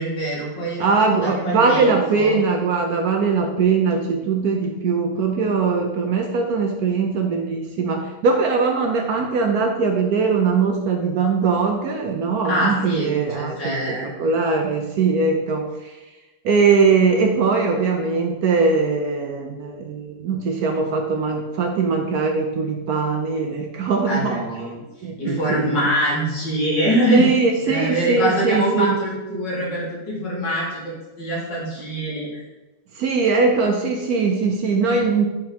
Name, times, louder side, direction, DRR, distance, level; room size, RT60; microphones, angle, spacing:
voice 1, 0.0-2.4 12.5-14.1 24.1-24.7 25.2-27.2 27.6-32.4, equal, 75° left, -7 dB, 2.8 m, -24 dB
voice 2, 0.8-13.8 14.0-15.9 16.4-24.4 25.0-25.7 27.1-28.9 32.9-35.3, right 4 dB, 70° right, 3 dB, 1.0 m, -21 dB
9.3 x 3.7 x 2.9 m, 1.1 s
omnidirectional pair, 1.9 m